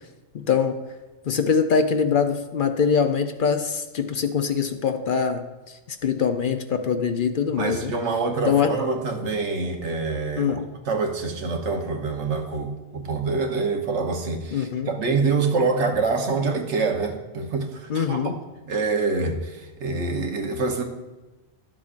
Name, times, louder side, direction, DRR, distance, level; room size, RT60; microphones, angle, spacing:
voice 1, 0.3-0.8 1.3-7.9 8.4-8.8 10.4-10.7 14.5-14.9 17.9-18.3, left 6 dB, 55° left, 0.7 m, -23 dB
voice 2, 7.6-10.6 10.9-18.3 18.7-20.8, right 4 dB, 85° right, 1.3 m, -26 dB
12.0 x 7.4 x 2.5 m
omnidirectional pair, 1.2 m